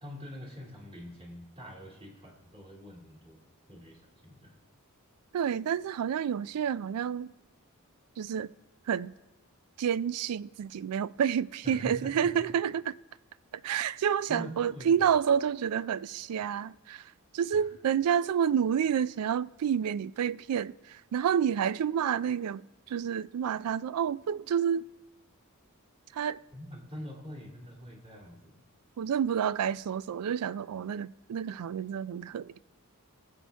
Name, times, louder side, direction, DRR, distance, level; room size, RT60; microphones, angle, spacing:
voice 1, 0.0-3.4 3.7-4.6 11.6-12.3 14.3-15.0 17.5-17.6 26.5-28.6, equal, 25° right, 2.4 m, -44 dB
voice 2, 5.3-7.3 8.2-8.5 8.9-9.1 9.8-12.9 13.6-24.8 26.1-26.4 29.0-32.5, right 8 dB, 85° right, 0.3 m, -29 dB
22.0 x 7.7 x 3.4 m
head